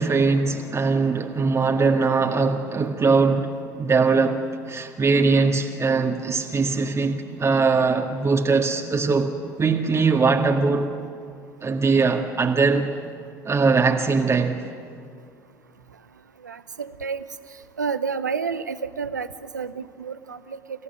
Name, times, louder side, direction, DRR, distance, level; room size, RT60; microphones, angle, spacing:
voice 1, 0.0-10.9 11.6-12.9 13.4-14.6, right 4 dB, 30° right, 2 dB, 2.0 m, -21 dB
voice 2, 16.4-17.2 17.8-19.3 19.5-20.6, right 5 dB, 90° right, 14 dB, 0.8 m, -29 dB
29.5 x 16.5 x 9.9 m, 2.3 s
figure-of-eight pair, 60°, 10 cm